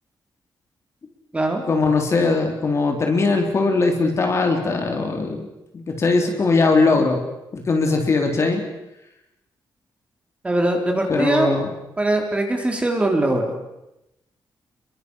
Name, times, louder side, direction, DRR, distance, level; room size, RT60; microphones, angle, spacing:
voice 1, 1.7-5.5 5.7-7.2 7.5-8.6 11.1-11.7, left 3 dB, 35° left, 3 dB, 3.6 m, -20 dB
voice 2, 10.4-11.5 12.0-13.5, right 1 dB, 15° right, 3 dB, 3.9 m, -21 dB
30.0 x 23.0 x 6.4 m, 0.91 s
wide cardioid pair, 170°, 8 cm